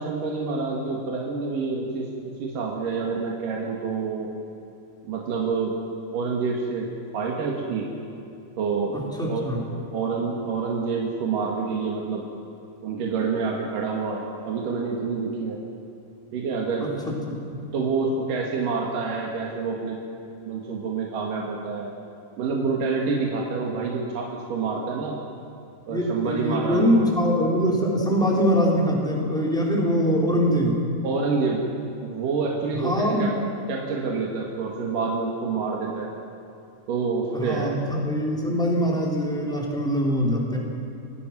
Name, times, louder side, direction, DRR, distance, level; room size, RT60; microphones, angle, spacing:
voice 1, 0.0-4.3 5.0-5.8 6.1-6.9 7.1-7.9 8.6-9.0 9.3-9.5 9.9-12.2 12.8-15.6 16.3-16.9 17.7-20.0 20.5-21.9 22.4-25.2 25.9-27.0 31.0-31.6 32.0-33.3 33.7-36.1 36.9-37.8, right 4 dB, 75° right, -2 dB, 3.4 m, -27 dB
voice 2, 8.9-9.6 16.8-17.4 25.9-30.8 32.7-33.3 37.3-40.6, equal, ahead, -3 dB, 3.7 m, -23 dB
28.5 x 19.0 x 6.1 m, 2.7 s
omnidirectional pair, 3.8 m